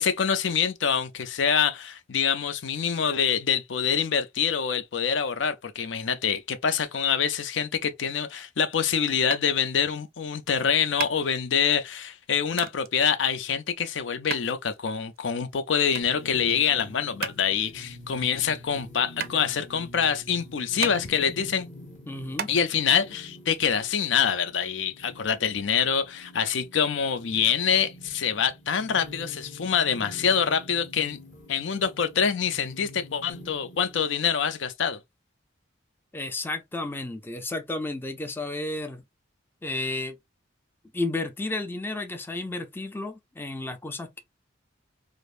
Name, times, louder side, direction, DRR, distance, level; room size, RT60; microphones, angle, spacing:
voice 1, 0.0-21.7 22.5-31.2 31.5-35.0, left 7 dB, 70° left, 0.5 m, -25 dB
sound 1, 9.3-22.5, right 8 dB, 55° right, 0.4 m, -39 dB
sound 2, 16.0-34.0, left 1 dB, 40° left, 1.3 m, -46 dB
voice 2, 22.1-22.5 36.1-39.0 39.6-40.2 40.9-44.2, left 2 dB, 10° left, 0.4 m, -32 dB
4.9 x 2.0 x 2.4 m
head